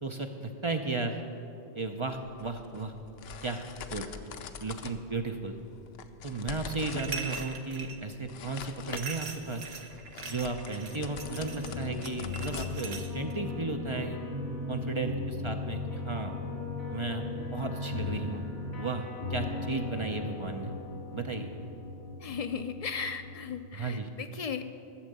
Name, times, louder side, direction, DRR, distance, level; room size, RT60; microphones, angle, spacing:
voice 1, 0.0-1.2 1.7-2.9 3.4-4.1 4.6-5.6 6.2-9.7 10.3-14.2 14.7-16.3 16.9-18.4 18.8-20.7 21.1-21.5 23.8-24.1, right 3 dB, 35° right, 4 dB, 0.6 m, -34 dB
sound 1, 2.1-13.3, left 6 dB, 70° left, 0.8 m, -45 dB
sound 2, 6.8-8.0 8.9-13.3, right 5 dB, 65° right, 1.1 m, -41 dB
sound 3, 10.1-23.6, left 3 dB, 90° left, 2.2 m, -38 dB
voice 2, 22.2-24.6, left 6 dB, 45° left, 7 dB, 0.5 m, -36 dB
13.0 x 7.3 x 6.7 m, 2.7 s
omnidirectional pair, 1.1 m